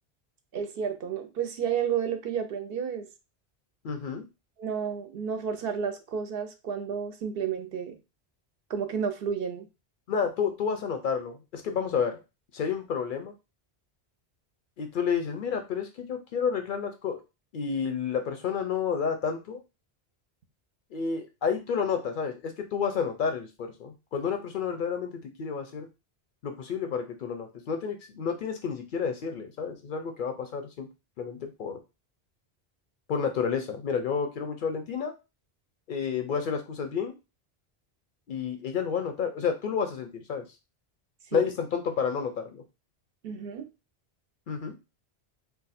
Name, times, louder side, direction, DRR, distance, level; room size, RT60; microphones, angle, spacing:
voice 1, 0.5-3.1 4.6-7.9 8.7-9.6 41.3-41.5 43.2-43.7, right 7 dB, 65° right, 7 dB, 0.7 m, -31 dB
voice 2, 3.8-4.2 10.1-12.2 12.5-13.3 14.8-17.2 17.5-19.6 20.9-25.9 26.4-30.9 31.2-31.8 33.1-35.1 35.9-37.1 38.3-40.4 41.3-42.6 44.5-44.7, left 6 dB, 60° left, 6 dB, 0.6 m, -30 dB
2.5 x 2.2 x 4.0 m, 0.27 s
omnidirectional pair, 1.1 m